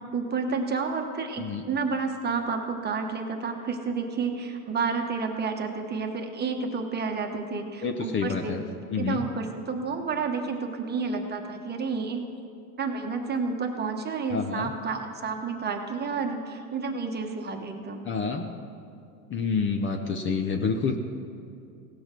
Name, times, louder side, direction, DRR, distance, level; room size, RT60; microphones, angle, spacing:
voice 1, 0.0-8.6 9.0-12.2 12.8-18.1, right 4 dB, 25° right, 4 dB, 1.1 m, -30 dB
voice 2, 7.8-8.6 8.9-9.3 14.3-14.7 18.0-18.5 19.3-21.0, left 5 dB, 30° left, 5 dB, 0.7 m, -28 dB
17.0 x 6.3 x 6.0 m, 2.5 s
supercardioid pair, 120°, 42 cm